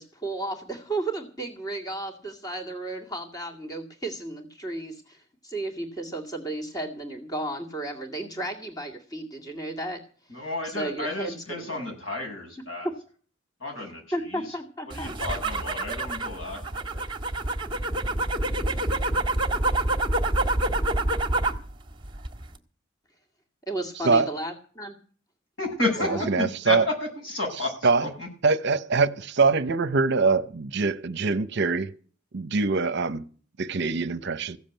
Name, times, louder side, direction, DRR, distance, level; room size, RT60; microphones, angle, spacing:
voice 1, 0.0-10.0 10.6-11.8 14.1-15.1 23.7-25.0 26.0-26.2, right 2 dB, 20° left, 2.1 m, -33 dB
voice 2, 10.3-12.9 13.6-14.0 14.3-14.5 14.9-17.0 25.6-28.3, left 2 dB, 70° left, 7.0 m, -31 dB
sound 1, 14.9-21.7 22.0-22.6, right 2 dB, 25° right, 1.7 m, -27 dB
voice 3, 26.0-26.9 27.8-28.1 28.4-31.9 32.3-33.2 33.6-34.6, right 4 dB, 55° right, 0.8 m, -23 dB
16.0 x 7.3 x 9.1 m
head